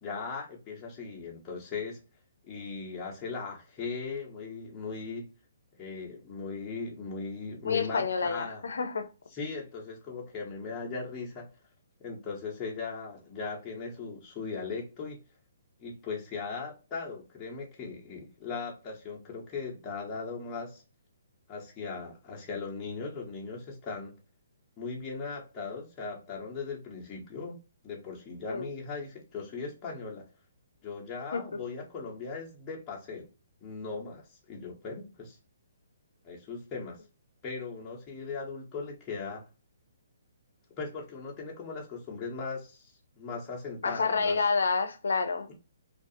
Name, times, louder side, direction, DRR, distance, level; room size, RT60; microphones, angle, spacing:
voice 1, 0.0-2.0 2.5-5.3 5.8-8.6 9.3-11.5 12.0-15.2 15.8-20.8 21.5-24.1 24.8-27.5 27.8-30.3 30.8-33.3 33.6-34.2 34.5-35.4 36.2-37.0 37.4-39.4 40.8-44.4, left 4 dB, 20° left, 1.0 m, -38 dB
voice 2, 7.6-9.1 28.5-28.7 31.3-31.5 43.8-45.5, left 4 dB, 80° left, 0.5 m, -28 dB
2.4 x 2.4 x 2.7 m
hypercardioid pair, 155°, 0 cm